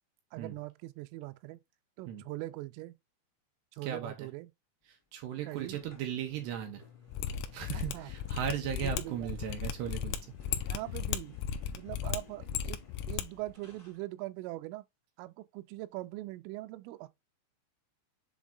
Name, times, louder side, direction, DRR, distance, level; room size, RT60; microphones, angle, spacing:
voice 1, 0.3-1.6 2.0-3.0 3.7-4.5 5.4-5.8 7.7-8.1 8.8-9.3 10.7-11.4 11.8-12.8 13.1-14.9 15.2-17.1, right 18 dB, 90° right, 3.2 m, -41 dB
voice 2, 3.8-4.3 5.1-6.8 7.5-10.2, right 9 dB, 75° right, 2.8 m, -37 dB
sound 1, 5.5-14.0, left 5 dB, 10° right, 0.8 m, -57 dB
Mechanisms, 7.1-13.2 13.5-13.6, left 9 dB, 90° left, 2.5 m, -35 dB
7.5 x 3.4 x 3.8 m
omnidirectional pair, 5.7 m